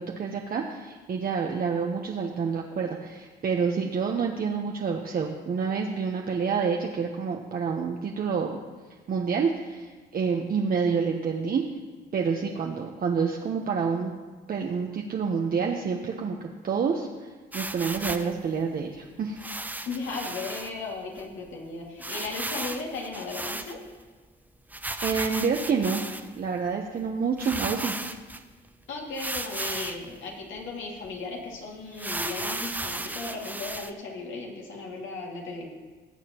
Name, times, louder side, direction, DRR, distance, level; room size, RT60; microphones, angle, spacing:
voice 1, 0.0-8.6 9.1-11.6 12.1-14.1 14.5-16.4 16.6-17.1 17.5-19.5 25.0-26.0 26.4-27.9, right 5 dB, 50° right, 1 dB, 0.9 m, -28 dB
sound 1, 17.5-18.3 19.4-20.7 21.2-21.3 21.5-21.6 22.0-24.0 24.7-26.4 27.0-27.1 27.4-28.4 29.1-30.1 30.6-30.7 31.0-31.2 31.9-33.9, right 2 dB, 10° right, 0.6 m, -35 dB
voice 2, 19.9-23.8 28.9-35.7, left 3 dB, 75° left, -1 dB, 2.2 m, -36 dB
19.5 x 7.3 x 2.9 m, 1.4 s
cardioid pair, 90°, 20 cm